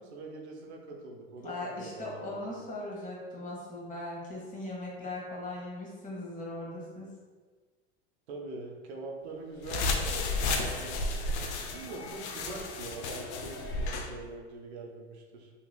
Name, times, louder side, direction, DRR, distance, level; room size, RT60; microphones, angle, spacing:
voice 1, 0.0-2.6 8.3-15.5, right 3 dB, 80° right, 1 dB, 0.6 m, -43 dB
voice 2, 1.4-7.1, left 2 dB, 25° left, -4 dB, 1.0 m, -39 dB
sound 1, 9.6-14.1, left 3 dB, 80° left, 0.5 m, -32 dB
2.9 x 2.8 x 2.3 m, 1.4 s
hypercardioid pair, 85°, 33 cm